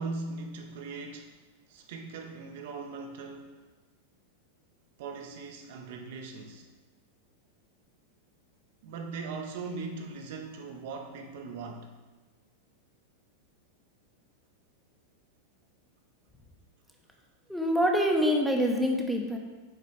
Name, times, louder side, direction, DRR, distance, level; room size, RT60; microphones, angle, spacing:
voice 1, 0.0-1.3 1.7-3.6 5.0-6.7 8.8-11.9, right 4 dB, 50° right, 3 dB, 0.7 m, -39 dB
voice 2, 17.5-19.4, equal, ahead, 1 dB, 0.8 m, -25 dB
6.6 x 4.2 x 4.9 m, 1.3 s
figure-of-eight pair, 90°, 0 cm